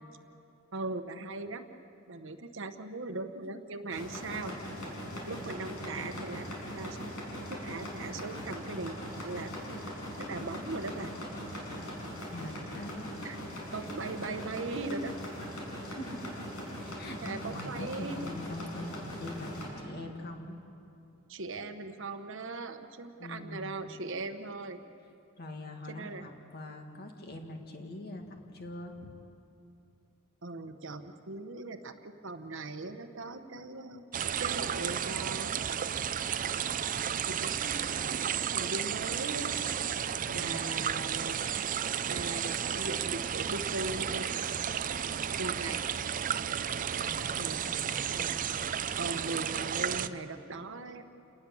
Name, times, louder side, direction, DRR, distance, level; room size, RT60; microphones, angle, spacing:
voice 1, 0.7-1.7 2.1-4.6 5.3-6.5 6.7-7.1 7.6-9.0 9.2-9.5 10.3-11.1 13.2-13.4 13.7-15.1 17.2-18.3 21.3-24.8 25.9-26.2 30.4-34.0 34.4-35.5 37.3-37.5 38.3-39.5 40.3-41.4 42.1-44.3 45.4-45.8 47.4-47.6 49.0-51.1, right 3 dB, 65° right, 8 dB, 1.1 m, -39 dB
sound 1, 3.9-19.7, equal, 85° left, 6.3 m, -40 dB
voice 2, 12.3-13.1 15.8-16.4 16.7-20.6 23.2-23.8 25.4-29.1 40.3-41.2 47.0-48.4 49.9-50.2, left 1 dB, 50° left, 3 dB, 2.1 m, -43 dB
sound 2, 34.1-50.1, right 8 dB, 40° right, 0.5 m, -33 dB
28.5 x 19.0 x 7.2 m, 2.8 s
head